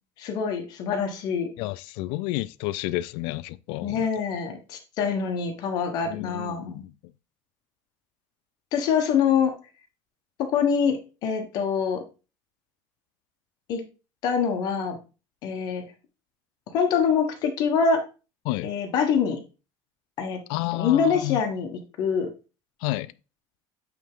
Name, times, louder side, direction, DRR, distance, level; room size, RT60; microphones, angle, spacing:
voice 1, 0.2-1.5 3.8-6.8 8.7-9.5 10.5-12.0 13.7-13.8 14.2-15.0 15.4-15.8 16.7-18.0 18.6-19.4 20.2-20.4 20.7-22.3, left 6 dB, 45° left, 1.2 m, -25 dB
voice 2, 1.6-4.0 6.0-6.9 18.5-18.7 20.5-21.4 22.8-23.1, left 18 dB, 65° left, 0.4 m, -30 dB
8.4 x 3.4 x 3.6 m
cardioid pair, 165°, 9 cm